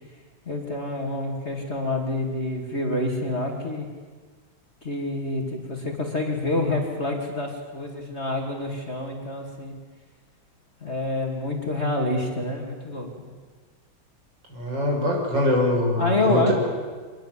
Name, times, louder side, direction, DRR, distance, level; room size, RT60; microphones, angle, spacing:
voice 1, 0.5-3.9 4.8-9.7 10.8-13.1 16.0-16.5, left 2 dB, 30° left, 1 dB, 2.8 m, -27 dB
voice 2, 14.5-16.5, left 1 dB, 60° right, -1 dB, 6.6 m, -23 dB
24.0 x 21.5 x 7.7 m, 1.5 s
omnidirectional pair, 2.2 m